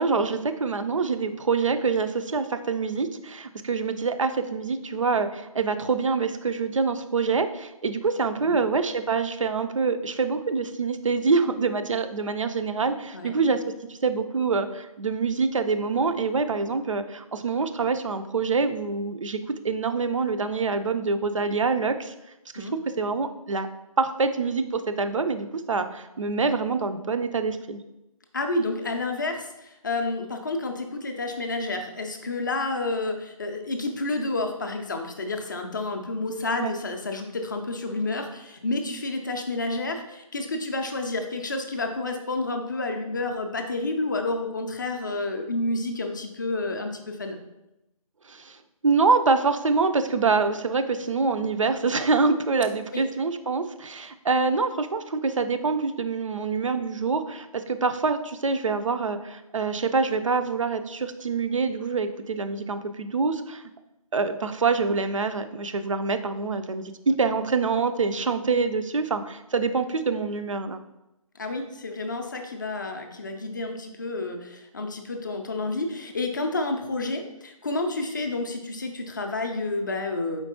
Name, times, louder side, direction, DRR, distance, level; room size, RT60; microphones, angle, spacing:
voice 1, 0.0-13.6 13.9-19.4 19.6-22.1 22.5-23.7 24.0-27.8 36.6-36.7 48.3-48.6 48.8-63.6 64.1-70.8, right 4 dB, 60° right, 9 dB, 0.4 m, -25 dB
voice 2, 28.3-47.4 52.9-53.0 71.4-80.4, left 2 dB, 35° left, 4 dB, 0.4 m, -30 dB
4.4 x 3.9 x 2.8 m, 0.91 s
figure-of-eight pair, 150°, 19 cm